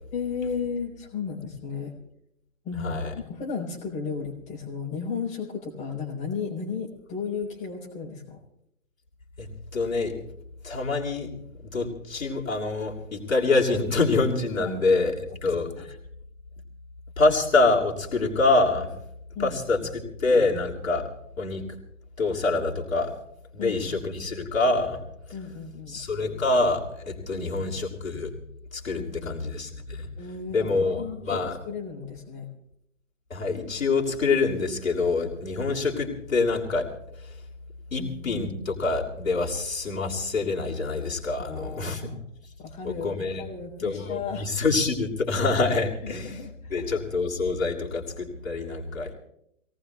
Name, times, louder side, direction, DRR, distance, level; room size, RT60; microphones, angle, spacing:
voice 1, 0.1-1.9 2.6-8.4 14.6-15.0 15.4-15.5 19.3-19.9 23.6-24.1 25.3-26.0 27.3-27.7 29.0-29.4 30.2-32.5 38.0-38.5 41.4-42.2 42.6-44.5 46.0-46.9, left 5 dB, 20° left, -3 dB, 3.7 m, -35 dB
voice 2, 2.8-3.1 9.4-10.2 10.6-11.3 11.6-15.7 17.2-18.9 19.4-21.1 21.4-21.6 22.2-23.1 23.5-25.0 25.9-28.3 28.7-30.1 30.5-31.6 33.3-36.9 37.9-42.2 42.8-43.4 43.8-46.3 46.7-49.1, left 3 dB, 80° left, -1 dB, 2.9 m, -26 dB
26.5 x 18.0 x 2.3 m, 0.77 s
figure-of-eight pair, 125°, 40 cm